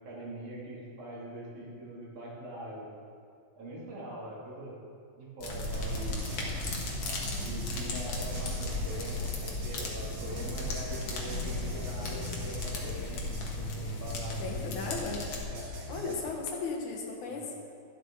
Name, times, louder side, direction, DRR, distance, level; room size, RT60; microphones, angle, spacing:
voice 1, 0.0-2.9 3.6-4.8 5.2-6.3 7.4-13.3 13.6-14.4 15.5-15.8 17.3-17.4, right 1 dB, 75° right, -6 dB, 4.1 m, -42 dB
sound 1, 5.4-15.4, left 2 dB, 55° left, 2.3 m, -36 dB
sound 2, 5.7-15.2 15.5-16.1, left 1 dB, 55° right, 3.1 m, -41 dB
voice 2, 14.4-15.2 15.9-17.5, left 4 dB, 75° left, 0 dB, 2.8 m, -36 dB
12.5 x 12.0 x 3.8 m, 2.5 s
omnidirectional pair, 3.5 m